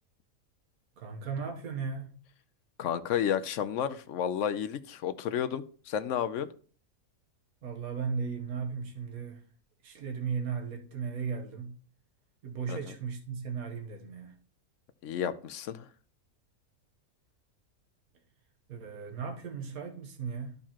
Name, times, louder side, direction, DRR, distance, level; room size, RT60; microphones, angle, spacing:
voice 1, 1.0-2.2 7.6-9.4 9.8-11.8 12.4-14.3 18.7-20.6, right 6 dB, 80° right, 1.6 m, -36 dB
voice 2, 2.8-6.5 12.7-12.8 15.0-15.9, left 9 dB, 65° left, 0.9 m, -31 dB
13.0 x 4.6 x 2.9 m
omnidirectional pair, 1.5 m